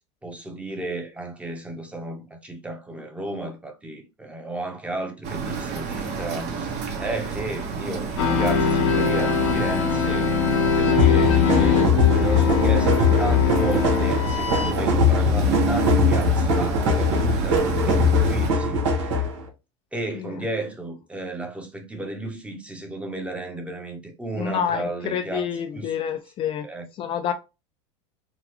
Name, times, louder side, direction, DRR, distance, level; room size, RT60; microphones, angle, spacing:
voice 1, 0.2-10.3 10.7-19.3 19.9-25.9 26.6-26.9, right 2 dB, 10° right, 0.9 m, -33 dB
sound 1, 5.2-18.5, right 5 dB, 55° right, 1.3 m, -30 dB
sound 2, 8.2-14.7, left 5 dB, 90° left, 1.1 m, -22 dB
sound 3, 11.0-19.4, left 4 dB, 90° right, 1.1 m, -21 dB
voice 2, 24.4-26.7 27.0-27.3, left 8 dB, 35° left, 0.4 m, -28 dB
3.8 x 2.3 x 3.0 m
supercardioid pair, 115°, 15 cm